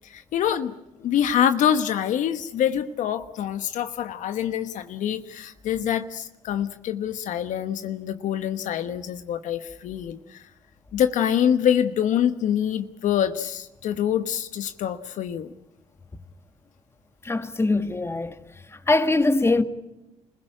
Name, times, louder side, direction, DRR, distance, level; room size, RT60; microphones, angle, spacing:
voice 1, 0.0-10.4 10.9-15.5, left 9 dB, 65° left, 1.1 m, -25 dB
voice 2, 17.2-18.4 18.7-19.6, left 2 dB, 20° left, 1.7 m, -22 dB
26.0 x 16.0 x 8.9 m
supercardioid pair, 70°, 14 cm